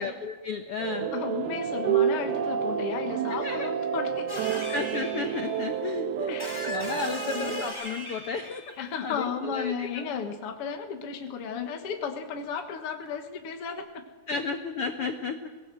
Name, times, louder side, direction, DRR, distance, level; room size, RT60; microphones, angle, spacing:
voice 1, 0.0-1.2 3.3-3.7 4.7-6.4 6.7-8.6 9.0-10.1 11.8-11.9 14.3-15.5, left 5 dB, 85° left, 6 dB, 1.2 m, -33 dB
sound 1, 0.8-7.7, right 9 dB, 80° right, 3.0 m, -29 dB
voice 2, 1.1-4.7 6.3-6.8 7.1-7.6 8.8-14.0, left 6 dB, 55° left, 4 dB, 1.8 m, -34 dB
sound 2, 4.3-5.8 6.4-9.0 11.3-11.4 13.1-13.2 13.7-13.8, left 1 dB, 10° right, 2.7 m, -39 dB
22.5 x 18.5 x 7.7 m, 1.4 s
omnidirectional pair, 4.4 m